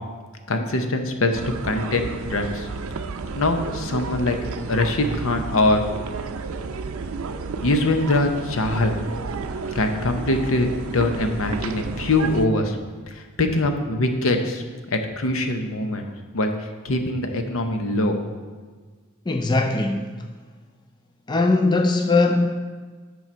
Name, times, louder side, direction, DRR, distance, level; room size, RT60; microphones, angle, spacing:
voice 1, 0.5-2.7 3.3-4.4 4.7-5.8 7.6-8.9 9.7-12.8 13.4-14.6 14.9-16.1 16.3-16.5 16.8-18.2, left 2 dB, 75° left, 0.8 m, -23 dB
sound 1, 1.3-12.5, right 4 dB, 90° right, 0.5 m, -32 dB
voice 2, 19.3-20.1 21.3-22.5, left 3 dB, 20° left, 0.4 m, -20 dB
8.7 x 5.5 x 4.4 m
head